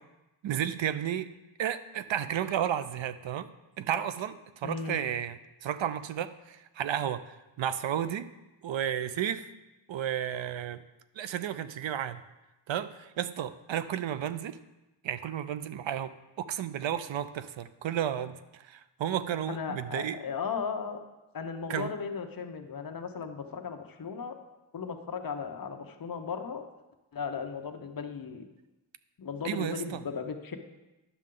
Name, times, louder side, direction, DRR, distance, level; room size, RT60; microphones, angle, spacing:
voice 1, 0.4-1.3 1.6-3.5 3.8-4.4 4.6-8.3 8.6-9.5 9.9-10.8 11.2-12.2 12.7-14.6 15.0-18.4 18.7-20.2 21.7-21.9 29.4-30.0, right 10 dB, 75° right, 13 dB, 0.5 m, -32 dB
voice 2, 4.6-5.0 19.5-21.0 21.3-24.4 24.7-26.6 27.1-28.4 29.2-30.6, left 6 dB, 50° left, 5 dB, 0.8 m, -36 dB
11.0 x 6.5 x 3.7 m, 1.0 s
wide cardioid pair, 175°, 45 cm